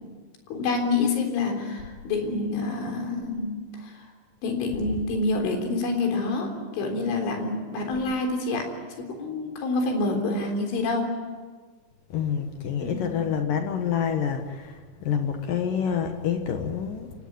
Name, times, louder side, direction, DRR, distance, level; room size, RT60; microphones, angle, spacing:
voice 1, 0.5-4.1 4.4-8.7 9.0-11.1 12.8-13.1, left 3 dB, 85° left, 4 dB, 6.2 m, -27 dB
voice 2, 12.1-17.1, left 7 dB, 60° left, 5 dB, 2.5 m, -27 dB
28.0 x 17.5 x 9.4 m, 1.4 s
omnidirectional pair, 5.3 m